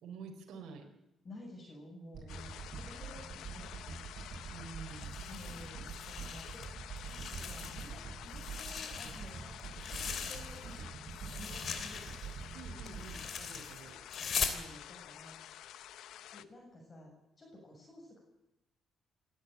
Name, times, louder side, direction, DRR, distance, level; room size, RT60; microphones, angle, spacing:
voice 1, 0.0-0.9 4.5-5.1 12.5-14.0, right 5 dB, 75° right, 1 dB, 4.1 m, -48 dB
voice 2, 1.2-4.0 5.1-10.6 11.4-12.3 14.1-15.3 16.3-17.1 17.4-18.2, left 1 dB, 35° left, -1 dB, 7.3 m, -53 dB
sound 1, 2.1-14.6, right 5 dB, 55° right, 8.0 m, -46 dB
sound 2, 2.3-16.4, left 11 dB, 80° left, 0.9 m, -50 dB
sound 3, 5.0-6.7 7.0-8.0 8.3-10.8 11.1-14.6, left 6 dB, 60° left, 3.0 m, -41 dB
28.0 x 13.0 x 9.4 m, 0.89 s
cardioid pair, 90°, 0 cm